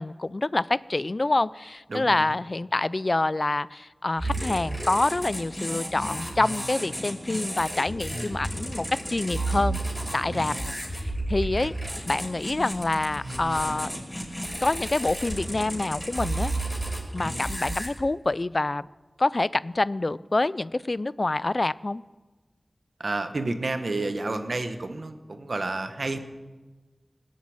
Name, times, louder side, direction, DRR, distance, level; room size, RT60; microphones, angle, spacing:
voice 1, 0.0-9.8 10.1-10.5 11.3-11.7 12.1-13.9 14.6-16.5 17.1-18.9 19.2-22.0, left 2 dB, 55° left, 19 dB, 0.4 m, -26 dB
voice 2, 1.9-2.3 8.1-8.4 10.3-10.8 23.0-26.2, right 2 dB, 75° right, 8 dB, 1.2 m, -31 dB
sound 1, 4.2-17.9, right 1 dB, 10° left, 5.7 m, -32 dB
19.0 x 8.4 x 8.8 m, 1.3 s
wide cardioid pair, 40°, 0 cm